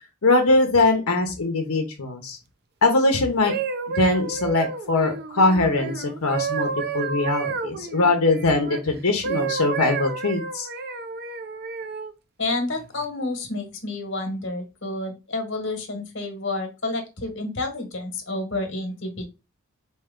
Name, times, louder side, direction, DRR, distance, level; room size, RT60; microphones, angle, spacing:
voice 1, 0.2-2.4 2.8-3.5 4.0-10.7, left 2 dB, 90° left, 3 dB, 0.9 m, -21 dB
sound 1, 3.3-8.8 9.2-12.1 12.8-13.0, right 6 dB, 45° right, 0.5 m, -30 dB
voice 2, 12.4-19.2, left 2 dB, 55° left, 6 dB, 1.2 m, -29 dB
4.4 x 3.0 x 3.7 m, 0.27 s
head